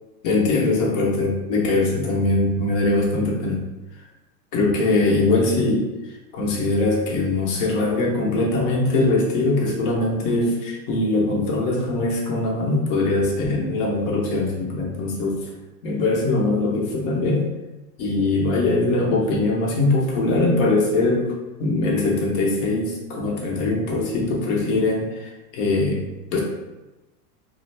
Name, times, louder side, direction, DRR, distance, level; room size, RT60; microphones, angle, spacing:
voice 1, 0.2-3.6 4.5-5.9 6.3-15.4 15.8-17.5 18.0-21.3 21.6-26.1 26.3-26.4, left 2 dB, 50° left, -2 dB, 0.8 m, -21 dB
2.4 x 2.0 x 3.2 m, 1.1 s
supercardioid pair, 135°, 48 cm